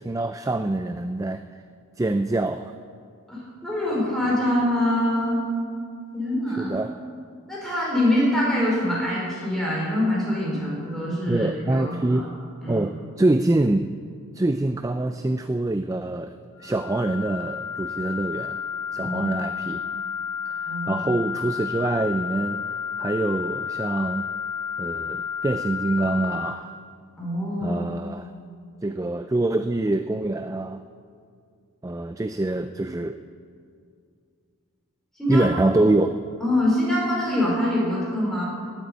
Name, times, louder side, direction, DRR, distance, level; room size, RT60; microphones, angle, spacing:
voice 1, 0.0-1.4 2.0-2.7 6.6-6.9 11.3-12.3 12.7-13.9 14.3-16.3 16.6-18.6 18.9-19.8 20.5-24.3 24.8-26.7 27.6-28.3 28.8-30.8 31.8-33.2 35.3-36.1, right 2 dB, 15° right, 9 dB, 0.3 m, -25 dB
voice 2, 3.3-5.4 6.1-6.7 7.5-12.2 12.6-12.9 19.0-19.4 20.7-21.0 27.2-27.8 35.2-35.4 36.4-38.4, left 1 dB, ahead, -6 dB, 4.8 m, -24 dB
sound 1, 16.5-26.5, left 7 dB, 25° left, 3.2 m, -31 dB
18.0 x 9.1 x 8.2 m, 2.3 s
head